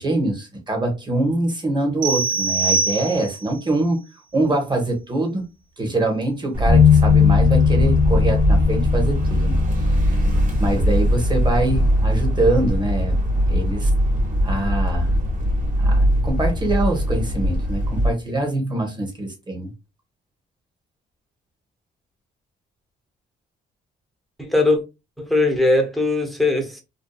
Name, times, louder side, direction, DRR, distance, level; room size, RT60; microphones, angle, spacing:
voice 1, 0.0-4.0 4.3-5.4 5.8-9.6 10.6-13.2 13.5-13.9 14.4-15.1 15.8-19.7, right 2 dB, 20° right, 1.0 m, -24 dB
sound 1, 2.0-3.6, right 4 dB, 75° right, 1.1 m, -23 dB
sound 2, 6.5-18.1, equal, 40° right, 1.1 m, -21 dB
sound 3, 6.7-13.7, left 6 dB, 75° left, 0.6 m, -20 dB
voice 2, 24.4-24.8 25.2-26.8, left 2 dB, ahead, 0.7 m, -19 dB
2.7 x 2.2 x 2.2 m
cardioid pair, 90°, 20 cm